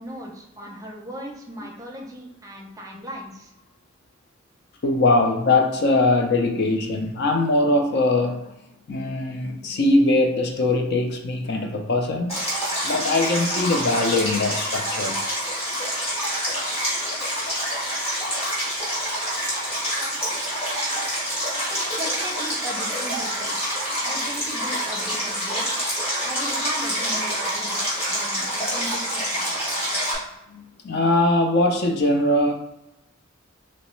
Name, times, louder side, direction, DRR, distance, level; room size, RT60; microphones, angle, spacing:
voice 1, 0.0-3.5 21.7-25.8 26.2-29.7, right 1 dB, 15° right, 0.5 m, -37 dB
voice 2, 4.8-8.5 8.9-12.4 12.8-15.3 30.5-32.5, left 2 dB, 55° left, 0.4 m, -21 dB
Stream, 12.3-30.1, equal, 30° left, 1.5 m, -27 dB
3.1 x 3.1 x 3.1 m
head